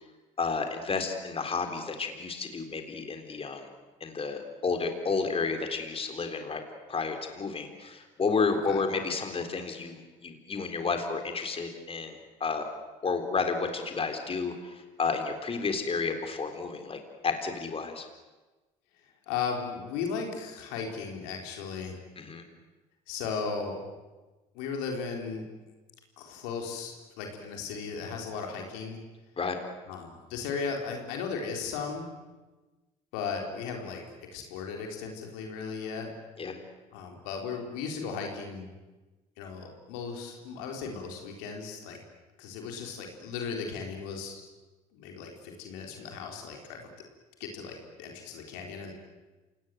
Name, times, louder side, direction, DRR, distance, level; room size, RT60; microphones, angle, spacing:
voice 1, 0.4-3.7 4.0-6.6 6.9-12.7 13.0-18.1 22.2-22.4 29.4-29.6 36.4-36.6, left 4 dB, 35° left, 6 dB, 3.9 m, -31 dB
voice 2, 19.3-22.0 23.1-23.8 24.5-25.4 26.2-29.0 29.9-32.1 33.1-34.0 34.3-36.1 36.9-38.7 39.4-42.0 42.4-44.4 44.9-46.9 47.4-48.9, left 5 dB, 80° left, 2 dB, 4.4 m, -36 dB
27.5 x 18.5 x 9.5 m, 1.2 s
hypercardioid pair, 65°, 17 cm